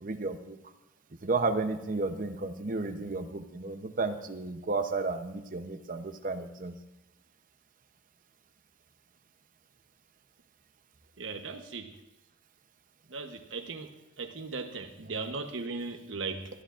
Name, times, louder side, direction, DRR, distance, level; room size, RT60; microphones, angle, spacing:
voice 1, 0.0-0.6 1.2-6.7, right 3 dB, 45° right, 0.7 m, -32 dB
voice 2, 11.2-11.9 13.1-13.9 14.2-16.5, right 4 dB, 75° right, 1.0 m, -37 dB
21.5 x 11.5 x 2.5 m
head